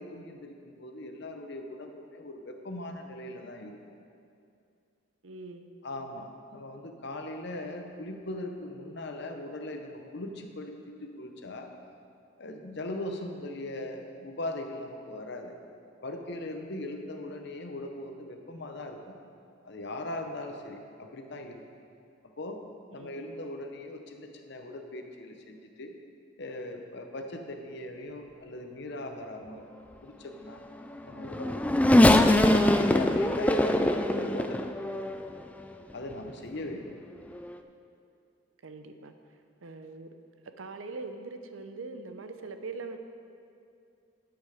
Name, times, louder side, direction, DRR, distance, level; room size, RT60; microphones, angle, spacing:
voice 1, 0.0-3.8 5.8-11.7 12.4-15.5 16.0-19.1 19.6-21.6 22.4-22.6 22.9-25.9 26.4-29.6 30.0-30.7 31.0-31.8 32.3-34.6 35.9-36.9, left 1 dB, 60° left, 4 dB, 0.9 m, -39 dB
voice 2, 5.2-5.7 22.9-23.1 38.6-39.1 39.6-40.1 40.6-43.0, right 3 dB, 85° right, 8 dB, 0.7 m, -41 dB
Race car auto racing / Accelerating revving vroom, 30.9-35.4 36.1-36.2 37.3-37.5, left 1 dB, 5° left, 0.3 m, -23 dB
9.7 x 8.0 x 5.0 m, 2.5 s
head